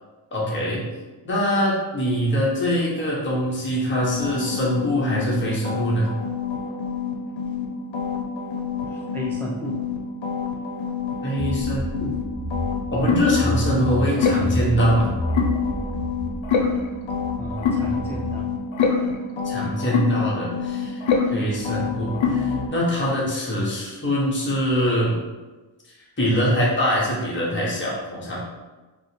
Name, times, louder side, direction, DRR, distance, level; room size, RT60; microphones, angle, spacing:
voice 1, 0.3-0.8 1.2-6.1 11.2-12.1 12.9-15.1 19.4-21.0 21.3-25.2 26.2-28.4, equal, 25° left, -5 dB, 1.0 m, -23 dB
sound 1, 4.0-7.7 7.9-12.2 12.5-22.7, left 5 dB, 70° left, 0.7 m, -26 dB
voice 2, 8.9-9.9 16.9-17.1 17.4-18.5, equal, 5° left, -3 dB, 0.5 m, -33 dB
Car / Engine, 11.4-18.4, equal, 45° right, 1.0 m, -30 dB
5.3 x 2.1 x 3.2 m, 1.2 s
wide cardioid pair, 115°, 47 cm